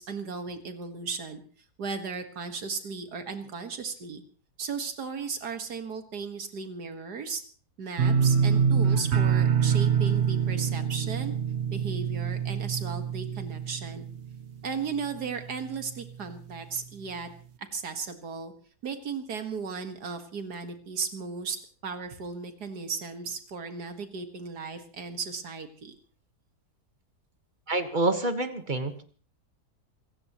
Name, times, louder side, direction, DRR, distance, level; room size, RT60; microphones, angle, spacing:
voice 1, 0.0-1.4 1.8-4.2 4.6-7.4 7.8-11.3 11.7-14.1 14.6-17.3 17.7-18.5 18.8-21.6 21.8-26.0, right 5 dB, 75° right, 7 dB, 2.2 m, -36 dB
sound 1, 8.0-14.8 15.1-15.7 16.1-16.2, right 7 dB, 50° right, 1.1 m, -25 dB
voice 2, 27.7-29.0, right 2 dB, 30° right, 8 dB, 1.5 m, -27 dB
27.0 x 16.0 x 3.0 m, 0.41 s
omnidirectional pair, 1.7 m